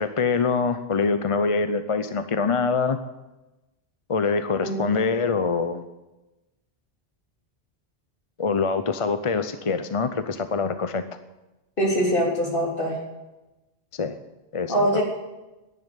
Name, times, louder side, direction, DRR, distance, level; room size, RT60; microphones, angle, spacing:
voice 1, 0.0-3.0 4.1-5.8 8.4-11.0 13.9-14.2 14.5-15.0, left 4 dB, 35° left, 10 dB, 0.7 m, -24 dB
voice 2, 11.8-13.0 14.7-15.0, equal, 55° left, -1 dB, 3.8 m, -23 dB
11.0 x 10.5 x 10.0 m, 1.0 s
omnidirectional pair, 1.1 m